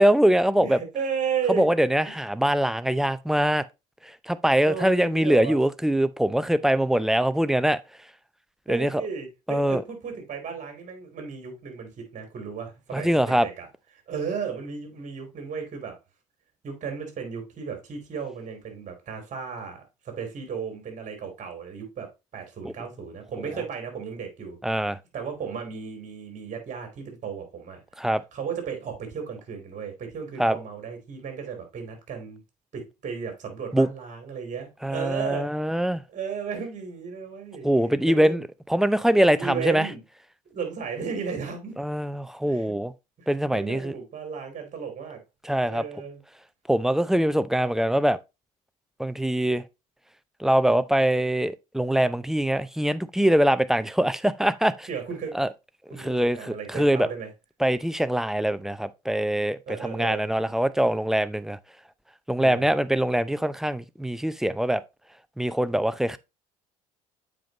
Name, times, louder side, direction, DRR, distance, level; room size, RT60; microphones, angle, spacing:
voice 1, 0.0-0.8 1.5-3.6 4.3-7.8 8.7-9.0 9.5-9.8 12.9-13.5 22.6-22.7 24.6-25.0 28.0-28.2 30.4-30.6 33.7-33.9 34.8-36.0 37.6-39.9 41.8-42.9 43.3-43.9 45.4-45.8 46.7-48.2 49.0-49.6 50.4-54.9 55.3-55.5 56.0-57.1 57.6-61.6 62.3-64.8 65.4-66.2, right 1 dB, ahead, 0.6 m, -23 dB
voice 2, 0.6-1.7 2.1-2.2 4.6-5.6 8.7-13.7 14.1-16.0 16.6-27.8 28.3-32.4 32.7-35.5 36.1-37.7 38.0-38.4 39.3-40.0 40.5-41.8 42.4-42.7 43.2-45.2 45.7-46.2 54.9-55.3 55.9-57.3 59.7-60.3 62.4-62.7, right 6 dB, 40° right, 3.3 m, -34 dB
7.6 x 5.4 x 2.9 m
hypercardioid pair, 65°, 19 cm